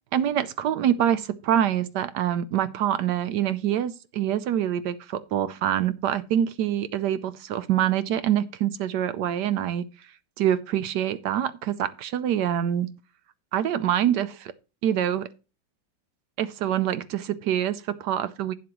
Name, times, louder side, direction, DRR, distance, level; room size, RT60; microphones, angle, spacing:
voice 1, 0.1-9.9 10.4-12.9 13.5-14.5 14.8-15.3 16.4-18.5, right 10 dB, 70° right, 1.1 m, -25 dB
11.5 x 8.6 x 3.0 m
omnidirectional pair, 2.2 m